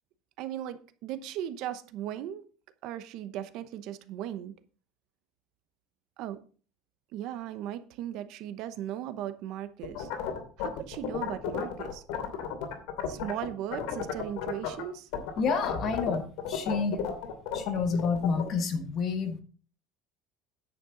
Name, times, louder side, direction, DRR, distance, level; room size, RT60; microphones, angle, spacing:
voice 1, 0.4-2.4 2.8-4.5 6.2-6.4 7.1-10.1 10.6-12.0 13.1-15.1, right 11 dB, 55° right, 0.9 m, -37 dB
sound 1, 9.8-13.5 13.7-14.8 15.1-18.5, left 10 dB, 80° left, 2.7 m, -33 dB
voice 2, 15.4-17.0 17.5-19.4, left 5 dB, 35° left, 1.5 m, -29 dB
10.0 x 8.3 x 3.8 m
cardioid pair, 170°, 0 cm